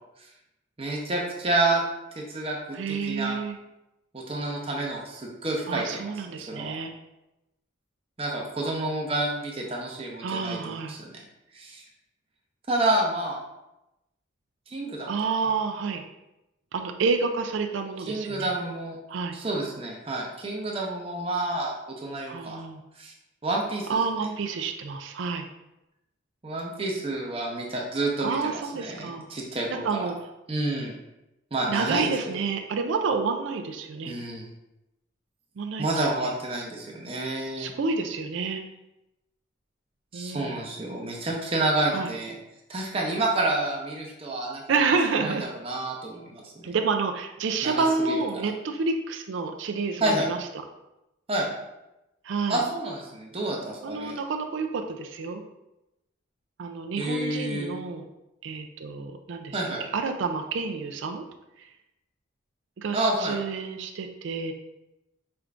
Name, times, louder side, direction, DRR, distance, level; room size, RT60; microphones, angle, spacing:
voice 1, 0.8-1.8 2.1-3.4 4.1-6.8 8.2-11.2 11.5-11.8 12.7-13.4 14.7-15.1 15.4-15.5 18.1-19.0 19.3-22.6 23.0-23.1 23.4-24.0 26.4-30.1 30.5-30.9 31.5-32.1 34.1-34.5 35.8-37.7 40.1-42.3 42.7-44.6 45.2-46.6 47.6-48.5 50.0-50.3 51.3-51.5 52.5-54.2 57.0-57.7 59.5-59.8 62.9-63.4, right 2 dB, 30° right, -1 dB, 0.7 m, -29 dB
voice 2, 2.7-3.6 5.7-6.9 10.2-11.0 15.1-16.0 16.7-18.5 19.1-19.4 22.3-22.8 23.9-25.5 28.2-29.3 29.8-30.1 31.7-34.1 35.6-35.9 37.6-38.6 40.1-40.5 41.9-42.1 44.7-45.5 46.6-50.4 52.2-52.6 53.8-55.4 56.6-58.0 58.4-59.6 59.9-61.2 62.8-64.5, right 4 dB, 65° right, 5 dB, 0.4 m, -29 dB
5.1 x 3.4 x 2.4 m, 0.93 s
head